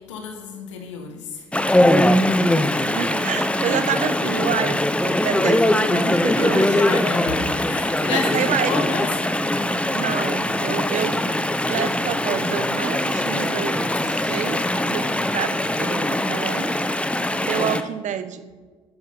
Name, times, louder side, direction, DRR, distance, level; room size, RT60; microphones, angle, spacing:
voice 1, 0.0-1.9 5.8-5.9 6.3-9.1, left 5 dB, 85° left, 5 dB, 1.7 m, -31 dB
Chatter / Stream, 1.5-17.8, left 1 dB, 10° left, 1.0 m, -21 dB
voice 2, 2.8-6.8 8.1-8.8 9.9-11.2 11.7-16.7 17.4-18.5, right 9 dB, 55° right, 12 dB, 1.2 m, -28 dB
12.5 x 10.5 x 5.7 m, 1.4 s
hypercardioid pair, 55°, 15 cm